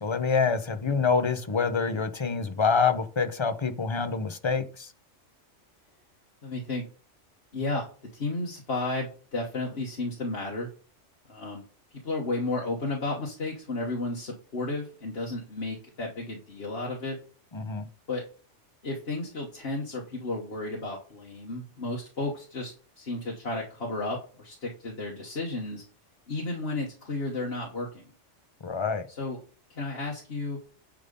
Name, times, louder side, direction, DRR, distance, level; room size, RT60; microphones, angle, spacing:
voice 1, 0.0-4.9 17.5-17.9 28.6-29.1, left 5 dB, 30° left, 0.7 m, -26 dB
voice 2, 6.4-6.8 7.5-7.9 8.1-10.7 11.3-11.6 12.0-17.2 18.1-18.2 18.8-25.8 26.3-28.0 29.1-29.4 29.7-30.6, left 2 dB, 55° left, 1.6 m, -33 dB
10.0 x 3.8 x 5.3 m
omnidirectional pair, 1.3 m